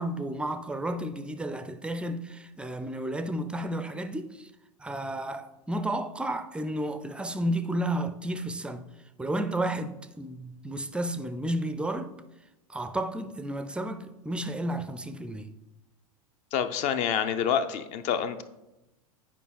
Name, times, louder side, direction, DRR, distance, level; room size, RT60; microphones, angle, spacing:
voice 1, 0.0-4.5 4.8-8.8 9.2-12.1 12.7-15.5, right 1 dB, 5° right, 0.5 m, -32 dB
voice 2, 16.5-18.4, left 8 dB, 40° left, 0.7 m, -27 dB
9.0 x 5.0 x 4.2 m
figure-of-eight pair, 95°, 19 cm